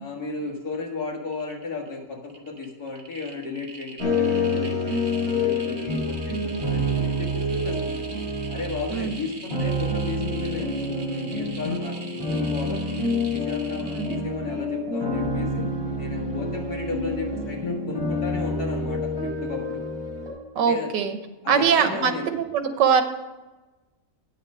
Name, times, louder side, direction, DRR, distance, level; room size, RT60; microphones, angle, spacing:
voice 1, 0.0-8.1 8.5-15.7 16.0-19.8 20.7-20.9 21.4-22.2, left 3 dB, 60° left, 0 dB, 2.2 m, -34 dB
sound 1, 0.7-1.0 1.3-1.9 2.2-14.1, right 3 dB, 35° right, 1.3 m, -43 dB
sound 2, 4.0-20.3, left 1 dB, 20° right, 4.2 m, -27 dB
voice 2, 6.3-6.8 8.9-9.2 14.0-14.3 20.5-21.2 21.5-23.0, right 7 dB, 80° right, 9 dB, 1.5 m, -23 dB
9.9 x 6.5 x 6.2 m, 1.1 s
omnidirectional pair, 1.9 m